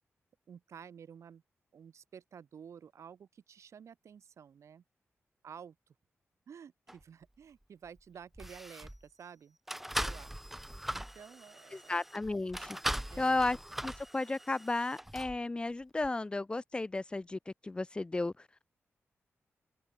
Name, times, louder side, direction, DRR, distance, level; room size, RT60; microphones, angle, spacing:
voice 1, 0.5-1.4 1.7-4.8 5.4-5.9 6.5-9.6 10.0-10.3 10.9-12.0 13.1-13.5, right 7 dB, 75° right, 5.5 m, -52 dB
sound 1, 6.9-7.0 7.9-8.0 8.3-9.0 9.7-15.4 16.0-16.1, right 1 dB, 5° right, 1.6 m, -40 dB
voice 2, 11.7-12.8 13.2-13.6 13.8-18.5, left 2 dB, 20° left, 1.0 m, -34 dB
open air
wide cardioid pair, 145°, 5 cm